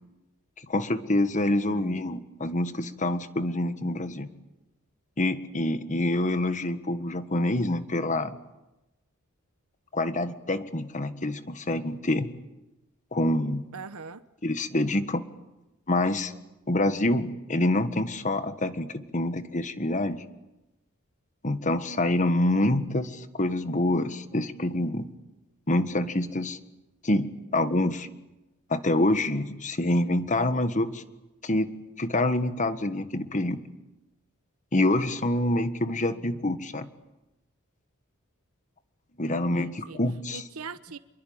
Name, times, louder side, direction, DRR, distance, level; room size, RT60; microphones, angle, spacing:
voice 1, 0.6-4.3 5.2-8.4 9.9-12.3 13.1-13.6 14.4-15.2 15.9-16.3 16.7-20.2 21.4-25.1 25.7-26.6 27.0-28.1 28.7-31.0 31.4-31.7 32.0-33.6 34.7-36.9 39.2-40.4, left 1 dB, 35° left, 11 dB, 1.5 m, -26 dB
voice 2, 1.7-2.2 13.7-14.2 35.3-35.4 36.1-36.5 39.3-40.0 40.3-41.0, right 4 dB, 85° right, 13 dB, 1.0 m, -43 dB
26.5 x 22.5 x 8.8 m, 0.99 s
head